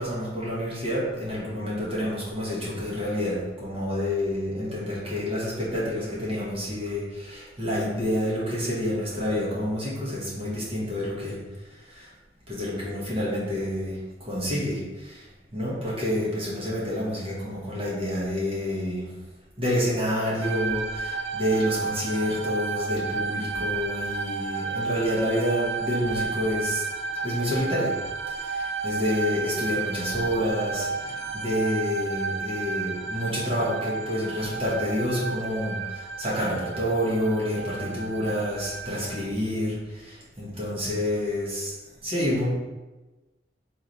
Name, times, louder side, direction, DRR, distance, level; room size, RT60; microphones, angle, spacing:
voice 1, 0.0-11.4 11.9-12.1 12.5-13.9 14.2-15.3 15.5-19.1 19.6-26.8 27.2-27.9 28.3-41.7 42.0-42.5, equal, 30° right, -7 dB, 1.4 m, -28 dB
sound 1, 20.4-39.2, right 4 dB, 85° right, 0.4 m, -32 dB
3.5 x 3.3 x 4.2 m, 1.2 s
head